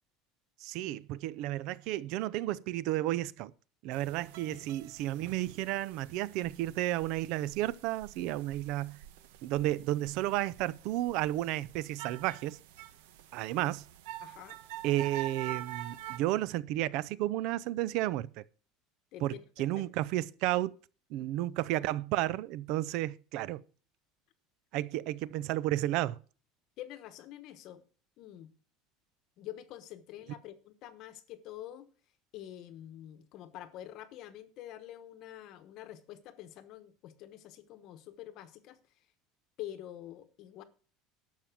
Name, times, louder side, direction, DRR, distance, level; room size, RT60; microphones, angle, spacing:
voice 1, 0.6-3.5 3.8-9.0 9.4-12.6 13.3-13.8 14.8-18.4 19.2-20.8 21.1-23.6 24.7-26.2, right 15 dB, 50° right, 0.5 m, -32 dB
sound 1, 3.9-16.2, right 14 dB, 80° right, 1.1 m, -47 dB
voice 2, 14.2-14.6 19.1-19.4 21.2-21.3 26.8-27.8 28.2-28.5 29.4-31.9 32.3-39.1 39.6-40.6, left 12 dB, 40° left, 1.0 m, -47 dB
12.0 x 7.3 x 5.9 m
cardioid pair, 175°, 0 cm